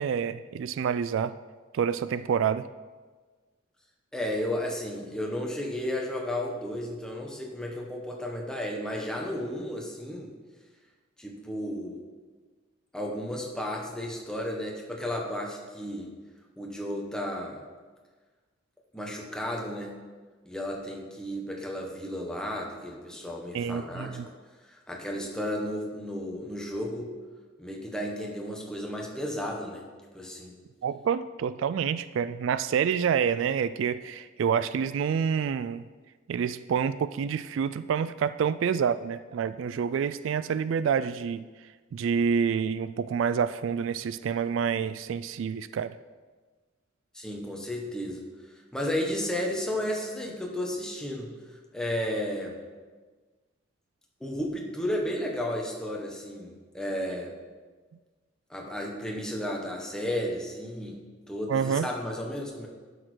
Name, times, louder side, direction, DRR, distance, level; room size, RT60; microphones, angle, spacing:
voice 1, 0.0-1.4 1.7-2.7 23.5-24.3 30.8-35.8 36.3-41.5 41.9-45.9 61.5-61.9, right 7 dB, 70° right, 14 dB, 0.3 m, -28 dB
voice 2, 4.1-10.3 11.2-12.0 12.9-16.1 16.6-17.6 18.9-19.9 20.5-24.2 24.7-27.1 27.6-29.8 30.1-30.5 47.1-48.2 48.7-51.3 51.7-52.6 54.2-57.3 58.5-61.0 61.3-62.7, left 1 dB, 5° left, -1 dB, 1.4 m, -33 dB
11.5 x 6.6 x 4.6 m, 1.4 s
head